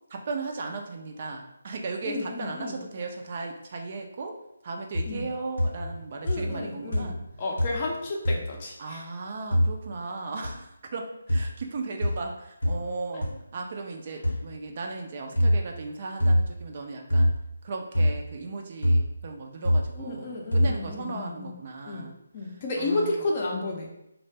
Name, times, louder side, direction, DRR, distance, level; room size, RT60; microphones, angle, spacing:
voice 1, 0.1-4.3 4.6-7.2 8.8-17.4 17.6-23.2, right 3 dB, 40° right, 2 dB, 0.3 m, -36 dB
voice 2, 2.0-2.8 5.1-5.2 6.2-9.0 20.0-21.5 21.9-22.1 22.3-23.9, left 2 dB, 35° left, -1 dB, 0.5 m, -32 dB
sound 1, 4.9-5.3 5.6-6.0 6.3-6.7 6.9-7.3 7.6-7.9 8.2-8.5 9.5-9.7 10.4-10.5 11.3-11.5 12.0-12.2 12.6-12.8 13.2-13.3 14.2-14.4 15.4-15.6 16.2-16.5 17.1-17.4 17.9-18.2 18.8-19.1 19.6-19.9 20.5-20.8, equal, 85° left, 0.8 m, -24 dB
2.0 x 2.0 x 3.3 m, 0.84 s
figure-of-eight pair, 160°, 0 cm